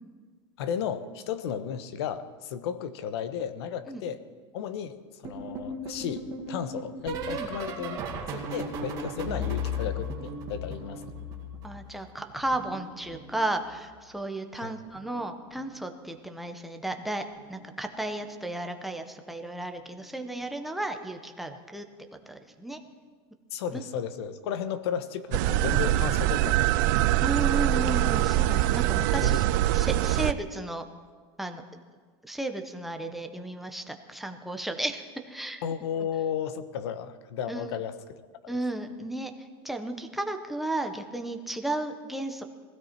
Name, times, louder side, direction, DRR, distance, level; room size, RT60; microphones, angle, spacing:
voice 1, 0.6-4.2 4.5-11.0 14.6-14.7 23.5-27.0 29.2-29.4 35.6-38.2, left 8 dB, 75° left, 12 dB, 1.1 m, -34 dB
sound 1, 5.2-12.0 12.3-13.9 14.9-15.2 15.5-15.8 17.4-17.6 18.0-18.2 19.8-19.9, left 1 dB, 25° right, 2.2 m, -36 dB
voice 2, 11.6-22.8 23.7-23.8 27.2-29.5 29.7-30.8 31.4-31.6 32.2-35.6 37.5-37.8 38.5-42.4, right 2 dB, ahead, 5 dB, 0.7 m, -34 dB
sound 2, 25.3-30.3, right 15 dB, 50° right, 0.4 m, -24 dB
20.0 x 16.0 x 4.4 m, 1.5 s
supercardioid pair, 170°, 14 cm